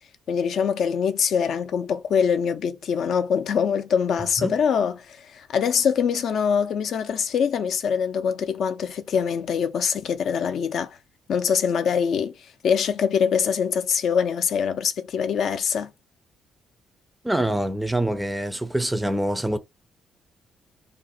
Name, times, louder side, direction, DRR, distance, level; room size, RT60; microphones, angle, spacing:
voice 1, 0.3-11.0 11.3-15.9, left 7 dB, 65° left, 0.4 m, -24 dB
voice 2, 17.2-19.6, right 1 dB, 10° right, 0.4 m, -25 dB
2.5 x 2.0 x 3.8 m
cardioid pair, 90°, 0 cm